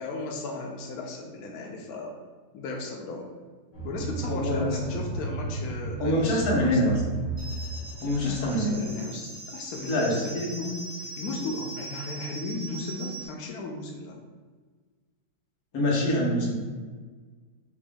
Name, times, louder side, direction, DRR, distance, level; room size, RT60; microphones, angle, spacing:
voice 1, 0.0-2.2 2.5-3.3 3.8-7.0 8.0-14.2, left 2 dB, 80° left, 0 dB, 0.8 m, -36 dB
sound 1, 3.7-8.7, right 3 dB, 30° left, 0.7 m, -34 dB
voice 2, 4.2-5.0 6.0-6.9 8.0-8.9 9.9-10.2 15.7-16.5, left 1 dB, 55° left, -4 dB, 1.3 m, -25 dB
sound 2, 7.4-13.3, right 2 dB, 40° right, 1.1 m, -41 dB
4.9 x 2.5 x 3.5 m, 1.4 s
omnidirectional pair, 2.2 m